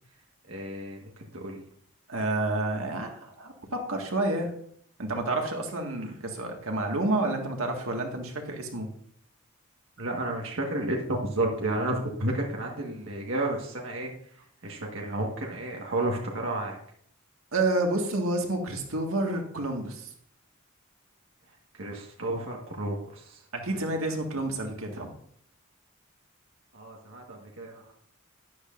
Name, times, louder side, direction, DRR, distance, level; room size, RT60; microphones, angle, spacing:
voice 1, 0.4-1.6 6.0-6.1 10.0-16.8 21.5-23.5 26.7-27.9, right 1 dB, 75° right, -1 dB, 1.5 m, -32 dB
voice 2, 2.1-4.5 5.0-8.9 17.5-20.1 23.5-25.1, right 2 dB, 90° right, 2 dB, 1.8 m, -29 dB
12.5 x 10.5 x 2.6 m, 0.63 s
head